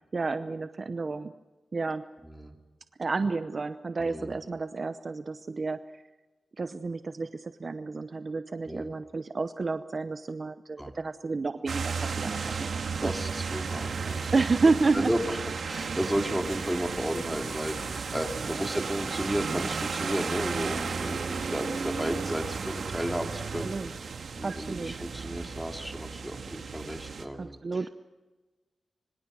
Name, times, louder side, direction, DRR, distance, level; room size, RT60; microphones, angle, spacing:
voice 1, 0.1-1.3 1.7-2.1 3.0-5.8 6.6-13.1 14.3-15.1 18.4-18.5 23.6-23.9 24.4-25.0 27.4-27.9, right 3 dB, 45° right, 11 dB, 0.8 m, -30 dB
voice 2, 2.2-2.6 4.0-4.4 8.7-8.9 10.8-10.9 12.4-12.6 13.0-14.4 14.9-23.7 24.0-27.9, equal, 5° right, 3 dB, 2.7 m, -33 dB
sound 1, 11.7-27.3, right 5 dB, 70° right, 1.7 m, -34 dB
26.5 x 24.5 x 6.3 m, 1.2 s
wide cardioid pair, 95°, 0 cm